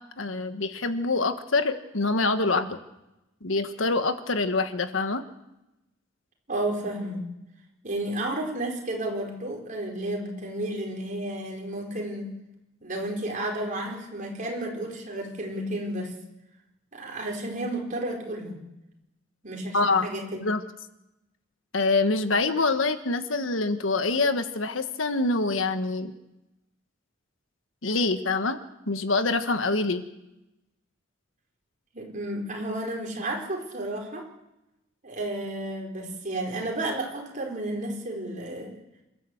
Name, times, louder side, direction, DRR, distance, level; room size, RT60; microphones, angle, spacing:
voice 1, 0.2-2.8 3.4-5.2 19.7-20.1 20.4-20.6 21.7-26.1 27.8-28.6 28.9-30.0, left 3 dB, 85° left, 9 dB, 1.4 m, -25 dB
voice 2, 6.5-7.2 7.8-12.3 12.8-16.1 16.9-18.6 19.4-20.4 31.9-34.2 35.0-38.7, right 1 dB, 40° right, 0 dB, 4.6 m, -32 dB
27.0 x 13.0 x 7.9 m, 0.94 s
head